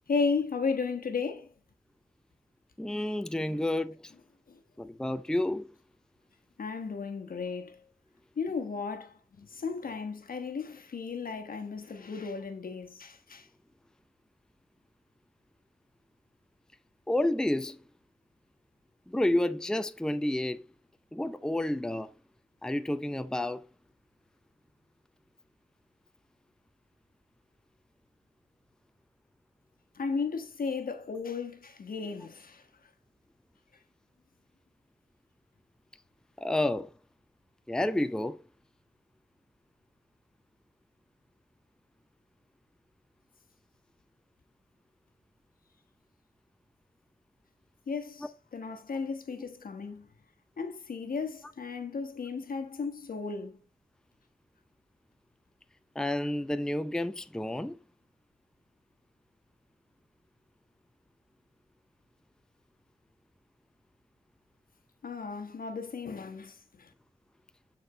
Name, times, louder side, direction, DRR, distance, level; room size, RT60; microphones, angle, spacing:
voice 1, 0.1-1.5 4.5-4.6 6.6-7.8 8.4-13.5 29.9-32.7 47.9-50.1 50.6-53.6 65.0-66.9, left 5 dB, 70° left, 1.2 m, -35 dB
voice 2, 2.8-4.0 4.8-5.7 17.1-17.8 19.1-20.6 21.1-22.1 22.6-23.6 36.4-36.9 37.7-38.4 56.0-57.8, left 1 dB, 5° left, 0.5 m, -30 dB
8.9 x 4.3 x 3.9 m
cardioid pair, 65°, 15 cm